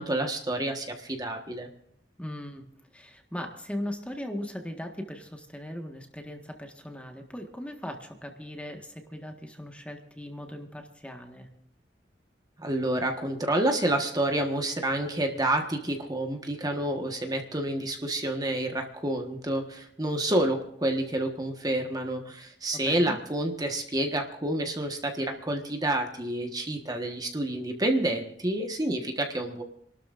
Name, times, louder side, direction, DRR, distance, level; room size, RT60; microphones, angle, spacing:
voice 1, 0.0-1.7 12.6-29.6, right 1 dB, 20° right, 3 dB, 1.4 m, -29 dB
voice 2, 2.2-2.6 2.9-11.5 22.7-23.2, left 1 dB, 5° left, 3 dB, 1.5 m, -38 dB
29.0 x 12.5 x 2.5 m, 0.71 s
head